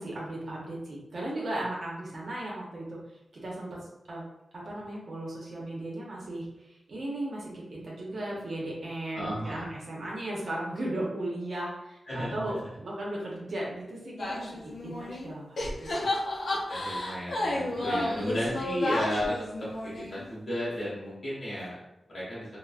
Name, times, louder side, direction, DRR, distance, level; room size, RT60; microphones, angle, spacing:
voice 1, 0.0-3.0 3.4-3.8 4.1-4.2 4.5-14.5 14.8-16.1 17.7-18.6, right 1 dB, 50° right, -4 dB, 0.7 m, -36 dB
voice 2, 9.1-9.6 12.1-12.4 16.5-19.4 20.0-21.8 22.1-22.5, equal, 30° left, -10 dB, 1.1 m, -33 dB
sound 1, 14.2-15.3 15.6-20.3, left 1 dB, 60° left, 0.5 m, -32 dB
3.3 x 2.1 x 2.4 m, 0.87 s
wide cardioid pair, 175°, 0 cm